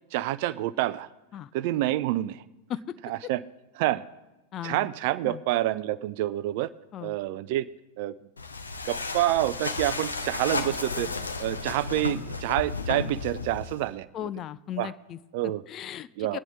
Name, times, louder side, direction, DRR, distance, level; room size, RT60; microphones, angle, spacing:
voice 1, 0.1-1.1 1.5-2.4 3.0-3.4 3.8-4.0 4.6-6.7 7.0-7.7 8.0-8.1 8.8-11.1 11.4-14.1 14.8-14.9 15.3-15.6 16.2-16.4, right 15 dB, 50° right, 17 dB, 0.4 m, -27 dB
voice 2, 4.5-4.9 5.2-5.4 6.9-7.1 14.1-15.2 15.7-16.4, left 11 dB, 30° left, 15 dB, 0.4 m, -36 dB
sound 1, 8.4-13.9, left 3 dB, 75° left, 0.9 m, -33 dB
21.0 x 9.1 x 3.5 m, 1.0 s
figure-of-eight pair, 90°, 0 cm